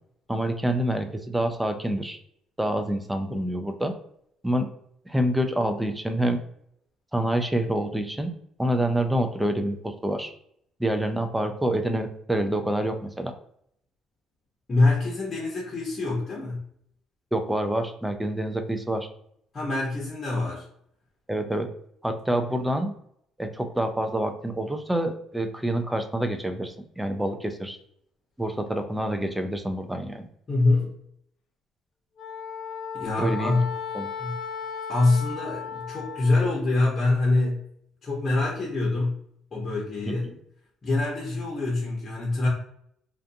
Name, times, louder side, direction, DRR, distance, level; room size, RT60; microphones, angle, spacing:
voice 1, 0.3-2.2 2.6-3.9 4.4-4.7 5.1-6.4 7.1-8.3 8.6-10.3 10.8-13.3 17.3-19.1 21.3-21.7 22.0-22.9 23.4-27.8 28.4-30.3 33.2-33.6 33.9-34.1, right 1 dB, 5° right, 7 dB, 0.3 m, -27 dB
voice 2, 14.7-16.6 19.5-20.7 30.5-31.0 32.9-33.7 34.2-34.4 34.9-37.7 38.0-39.2 39.5-40.3 40.8-42.5, left 2 dB, 30° left, -4 dB, 0.8 m, -25 dB
Wind instrument woodwind instrument, 32.2-36.6, left 6 dB, 65° left, 0.5 m, -35 dB
2.5 x 2.3 x 2.5 m, 0.69 s
cardioid pair, 120°, 0 cm